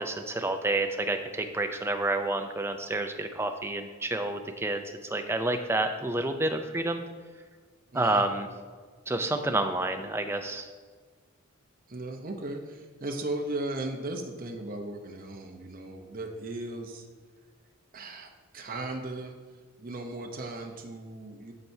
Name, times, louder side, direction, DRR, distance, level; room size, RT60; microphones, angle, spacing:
voice 1, 0.0-7.0 7.9-8.5 9.1-10.7, right 2 dB, 10° right, 5 dB, 0.4 m, -29 dB
voice 2, 7.9-8.3 11.9-17.1 17.9-19.4 19.8-21.5, right 2 dB, 40° right, 2 dB, 0.7 m, -37 dB
13.5 x 4.5 x 2.7 m, 1.5 s
head